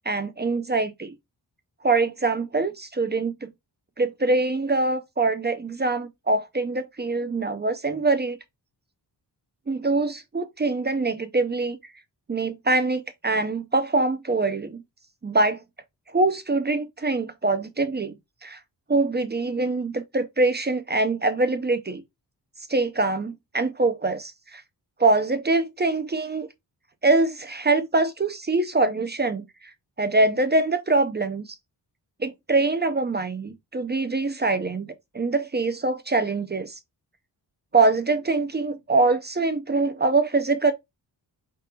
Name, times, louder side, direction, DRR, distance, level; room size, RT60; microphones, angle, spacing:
voice 1, 0.1-1.2 1.8-3.5 4.0-8.4 9.7-11.8 12.3-14.8 15.2-15.6 16.1-18.2 18.4-18.6 18.9-22.0 22.7-24.6 25.0-26.5 27.0-29.4 30.0-31.5 32.2-36.8 37.7-40.7, right 3 dB, 25° right, 0.5 m, -24 dB
4.6 x 3.8 x 2.7 m
wide cardioid pair, 110°, 43 cm